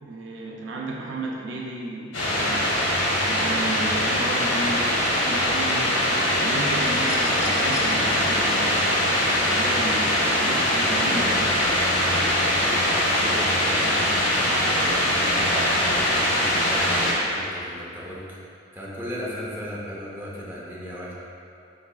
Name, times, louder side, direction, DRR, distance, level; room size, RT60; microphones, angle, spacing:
voice 1, 0.0-2.7 3.3-6.0 6.4-11.6, right 2 dB, 70° right, -2 dB, 0.4 m, -33 dB
sound 1, 2.1-17.1, left 1 dB, 80° left, 1.2 m, -22 dB
sound 2, 6.9-7.9 9.5-9.6, left 4 dB, 35° left, 0.3 m, -40 dB
voice 2, 10.8-11.2 12.4-18.4 18.7-21.1, equal, 10° right, -6 dB, 0.6 m, -36 dB
4.9 x 4.1 x 2.3 m, 2.5 s
head